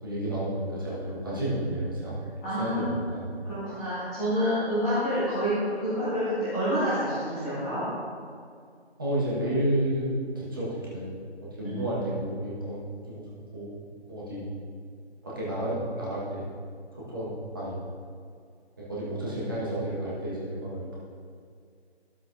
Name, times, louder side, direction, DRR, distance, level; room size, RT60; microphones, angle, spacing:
voice 1, 0.0-2.2 2.6-3.5 9.0-11.2 11.4-13.7 14.1-14.5 15.2-16.4 16.9-17.8 18.8-21.0, right 1 dB, 20° right, -8 dB, 1.4 m, -31 dB
voice 2, 2.4-2.8 3.4-7.8 11.6-11.8, equal, 5° left, -16 dB, 1.3 m, -28 dB
13.0 x 7.6 x 2.6 m, 2.2 s
figure-of-eight pair, 160°, 33 cm